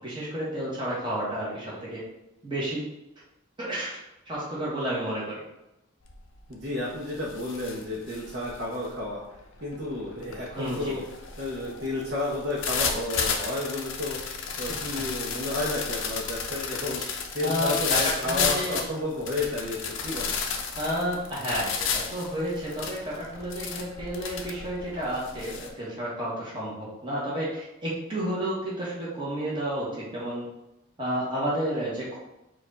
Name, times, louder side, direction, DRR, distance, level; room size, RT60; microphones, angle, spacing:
voice 1, 0.0-2.0 2.4-2.8 3.6-4.0 4.3-5.4 10.5-10.9 14.7-15.0 17.4-18.8 20.7-30.4 31.0-32.2, equal, 25° right, -7 dB, 1.3 m, -31 dB
sound 1, 6.1-6.4 6.8-25.7, left 5 dB, 70° left, 0.6 m, -33 dB
voice 2, 6.5-9.2 9.6-11.0 11.4-14.2 14.6-20.4, left 2 dB, 55° right, -7 dB, 0.9 m, -32 dB
4.6 x 2.5 x 4.1 m, 0.91 s
head